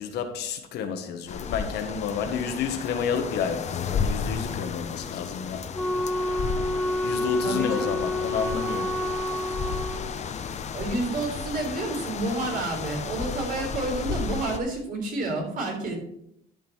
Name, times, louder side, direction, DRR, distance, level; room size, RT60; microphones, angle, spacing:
voice 1, 0.0-5.6 7.0-8.9, left 7 dB, 75° left, 6 dB, 1.4 m, -30 dB
sound 1, 1.3-14.6, left 6 dB, 40° left, 0.8 m, -33 dB
Wind instrument woodwind instrument, 5.7-10.1, left 1 dB, 5° left, 1.0 m, -28 dB
voice 2, 7.4-8.0 10.7-16.0, right 2 dB, 55° right, 0 dB, 3.9 m, -29 dB
12.5 x 5.4 x 4.5 m, 0.74 s
cardioid pair, 110°, 17 cm